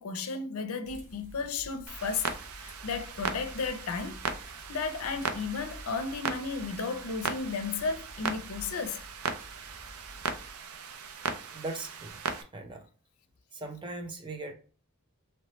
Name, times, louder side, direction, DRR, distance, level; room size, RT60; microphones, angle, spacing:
voice 1, 0.0-2.3 2.6-4.2 4.7-9.0, left 4 dB, 70° left, 0.5 m, -34 dB
sound 1, 0.8-10.5, equal, 40° right, 1.4 m, -50 dB
Clock, 1.9-12.4, right 5 dB, 75° right, 0.5 m, -38 dB
voice 2, 11.5-12.2 12.5-12.9 13.5-14.5, right 2 dB, 20° right, 0.5 m, -39 dB
3.1 x 3.1 x 3.0 m
head